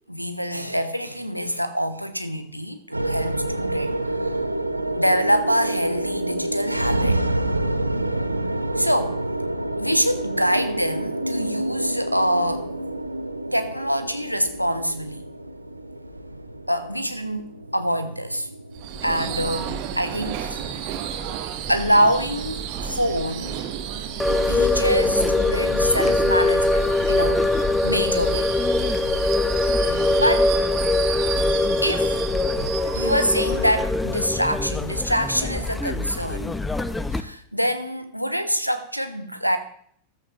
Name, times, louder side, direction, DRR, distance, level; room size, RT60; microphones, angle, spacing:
voice 1, 0.1-4.3 4.9-7.2 8.8-9.2 9.8-12.7 13.5-15.3 16.7-17.5 17.7-18.5 19.0-20.6 21.7-23.6 24.5-27.4 27.8-28.5 29.7-30.5 31.8-32.1 32.9-36.6 37.1-39.6, equal, 90° left, 10 dB, 1.0 m, -25 dB
sound 1, 2.9-21.3, right 1 dB, 85° right, 0.7 m, -28 dB
Subway metro underground / Screech, 18.7-34.7, right 8 dB, 45° right, 1.2 m, -32 dB
sound 2, 24.2-37.2, left 2 dB, 10° left, 0.6 m, -22 dB
14.0 x 13.0 x 3.0 m, 0.64 s
figure-of-eight pair, 90°, 0 cm